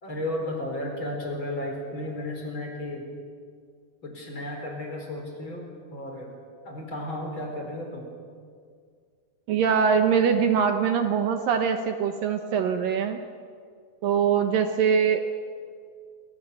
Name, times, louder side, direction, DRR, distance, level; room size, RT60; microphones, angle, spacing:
voice 1, 0.0-3.1 4.0-6.3 6.6-8.1, left 1 dB, 30° left, 2 dB, 4.6 m, -33 dB
voice 2, 9.5-13.2 14.0-15.2, right 7 dB, 70° right, 6 dB, 2.5 m, -23 dB
28.5 x 24.5 x 6.9 m, 2.1 s
omnidirectional pair, 4.6 m